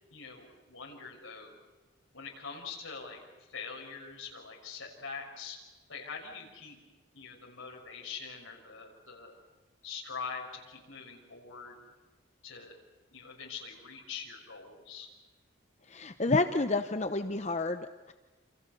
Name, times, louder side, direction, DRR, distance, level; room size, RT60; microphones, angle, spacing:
voice 1, 0.1-1.6 2.1-5.6 5.9-6.8 7.1-9.4 9.8-11.8 12.4-12.8 13.1-15.1, left 5 dB, 85° left, 0 dB, 6.3 m, -44 dB
voice 2, 15.9-18.1, left 3 dB, 35° left, 9 dB, 0.8 m, -30 dB
28.0 x 28.0 x 6.9 m, 1.2 s
head